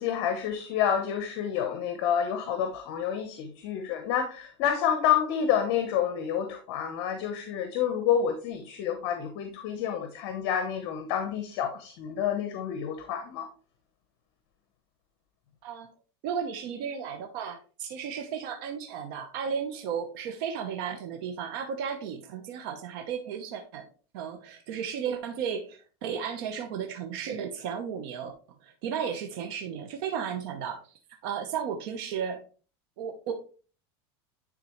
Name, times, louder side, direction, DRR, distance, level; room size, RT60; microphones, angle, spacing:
voice 1, 0.0-13.5, left 8 dB, 55° left, 1.0 m, -29 dB
voice 2, 16.2-23.9 24.1-28.3 28.6-30.9 31.2-32.4 33.0-33.3, right 7 dB, 65° right, 0.9 m, -34 dB
9.8 x 3.8 x 3.1 m
supercardioid pair, 150°, 13 cm